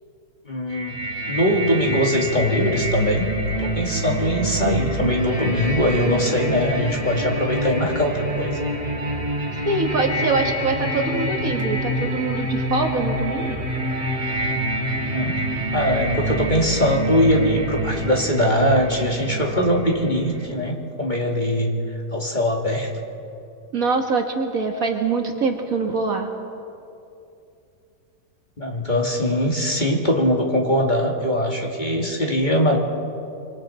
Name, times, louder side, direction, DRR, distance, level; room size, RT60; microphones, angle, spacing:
voice 1, 0.5-1.0 1.3-3.3 3.6-8.6 14.9-15.4 15.7-21.7 22.1-22.9 28.6-32.8, equal, 25° left, 0 dB, 2.1 m, -21 dB
sound 1, 0.7-20.5, right 1 dB, 30° right, 3.2 m, -26 dB
voice 2, 9.7-13.6 23.7-26.3, right 4 dB, 55° right, 3 dB, 2.0 m, -24 dB
25.5 x 25.5 x 4.3 m, 2.6 s
omnidirectional pair, 1.8 m